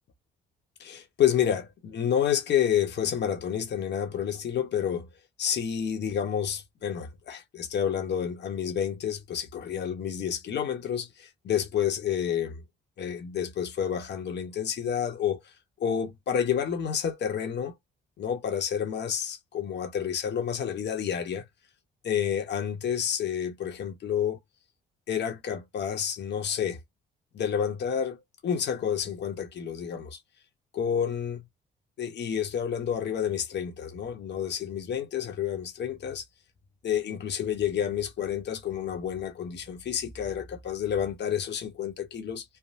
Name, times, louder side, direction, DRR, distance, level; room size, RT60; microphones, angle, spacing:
voice 1, 0.8-5.1 5.4-12.6 13.0-15.4 15.8-17.7 18.2-21.4 22.0-24.4 25.1-26.8 27.3-30.2 30.7-31.4 32.0-36.2 36.8-42.4, left 8 dB, 60° left, 1.1 m, -29 dB
3.5 x 2.2 x 2.7 m
cardioid pair, 90°, 20 cm